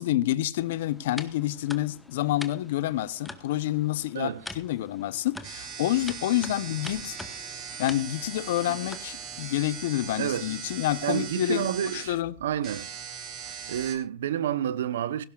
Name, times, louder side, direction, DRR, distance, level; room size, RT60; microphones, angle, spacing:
voice 1, 0.0-7.2 7.8-11.7 11.9-12.3, left 14 dB, 65° left, 0.7 m, -28 dB
sound 1, 0.6-9.4, left 2 dB, 5° left, 1.0 m, -45 dB
sound 2, 5.4-13.9, right 6 dB, 40° right, 4.1 m, -40 dB
voice 2, 10.2-10.5 11.0-12.9 13.4-15.2, right 10 dB, 70° right, 0.8 m, -30 dB
17.0 x 16.0 x 2.4 m
hypercardioid pair, 115°, 0 cm